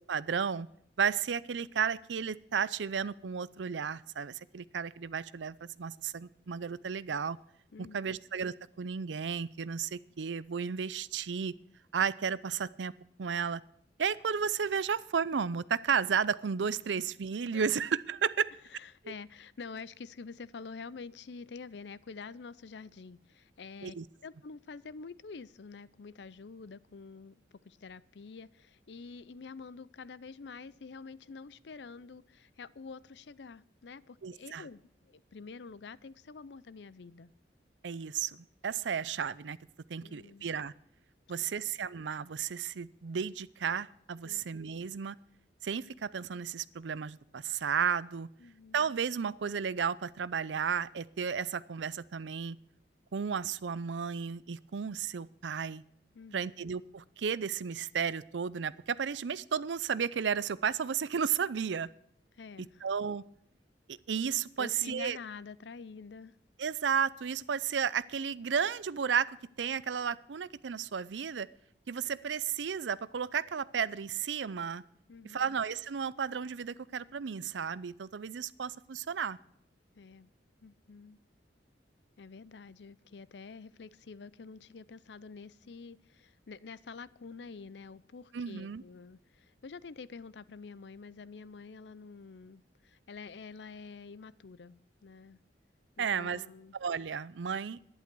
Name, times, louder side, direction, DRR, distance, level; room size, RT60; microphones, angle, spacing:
voice 1, 0.1-0.7 1.0-7.4 7.8-11.5 11.9-12.9 13.2-13.6 14.0-18.5 19.0-19.1 23.8-24.0 34.2-34.7 37.8-39.6 39.9-40.7 41.3-45.2 45.6-48.3 48.7-52.6 53.1-55.8 56.3-61.9 62.8-63.2 63.9-65.2 66.6-69.3 69.6-71.5 71.9-74.8 75.2-79.4 88.3-88.8 96.0-96.4 96.7-97.8, right 7 dB, 85° right, 0.5 m, -33 dB
voice 2, 7.7-8.2 17.5-17.6 18.7-23.9 24.2-37.3 40.0-40.5 41.4-41.6 44.2-44.4 48.4-48.9 56.1-56.5 62.3-62.9 64.6-66.4 75.1-75.6 79.9-80.3 80.6-81.2 82.2-95.4 96.0-96.8, left 4 dB, 70° left, 0.5 m, -48 dB
11.5 x 10.5 x 6.1 m
head